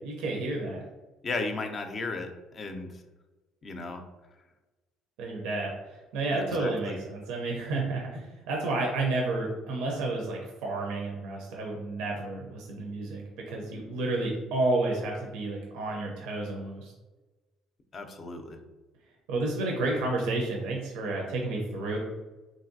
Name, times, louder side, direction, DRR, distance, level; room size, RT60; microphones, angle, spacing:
voice 1, 0.0-0.8 5.2-5.7 6.1-16.9 19.3-22.0, right 2 dB, 85° right, -1 dB, 0.5 m, -31 dB
voice 2, 1.2-2.9 3.6-4.0 6.3-7.0 17.9-18.6, left 3 dB, 40° left, 6 dB, 0.4 m, -35 dB
3.1 x 2.6 x 2.6 m, 1.2 s
cardioid pair, 105°, 0 cm